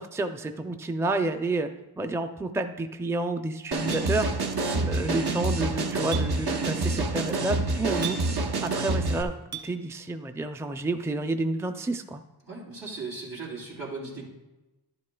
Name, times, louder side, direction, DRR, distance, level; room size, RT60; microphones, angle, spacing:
voice 1, 0.0-1.7 2.0-4.3 4.8-8.2 8.6-9.3 9.6-12.2, right 2 dB, 5° right, 7 dB, 0.4 m, -29 dB
sound 1, 3.7-9.2, right 3 dB, 65° right, 0.8 m, -27 dB
Chink clink, 3.9-4.1 6.1-6.3 8.0-8.2 9.5-9.7, right 8 dB, 40° right, 1.1 m, -35 dB
voice 2, 12.4-14.2, right 3 dB, 85° right, -6 dB, 3.1 m, -37 dB
11.5 x 10.5 x 2.3 m, 1.1 s
wide cardioid pair, 60°, 41 cm